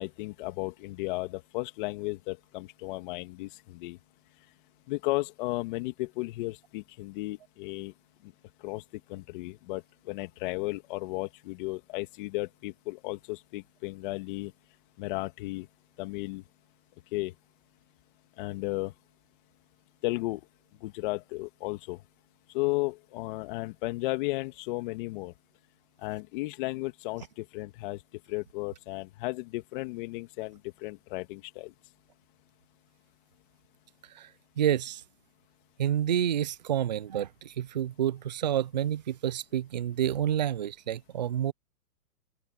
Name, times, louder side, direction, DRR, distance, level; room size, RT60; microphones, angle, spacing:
voice 1, 0.0-4.0 4.9-7.9 8.2-8.3 8.6-8.8 9.1-14.5 15.0-15.7 16.0-16.4 17.1-17.3 18.4-18.9 20.0-20.4 20.8-22.0 22.5-25.3 26.0-28.0 28.3-31.7, left 22 dB, 30° left, 2.2 m, -34 dB
voice 2, 34.6-35.0 35.8-41.5, right 10 dB, 30° right, 0.4 m, -29 dB
hypercardioid pair, 150°, 47 cm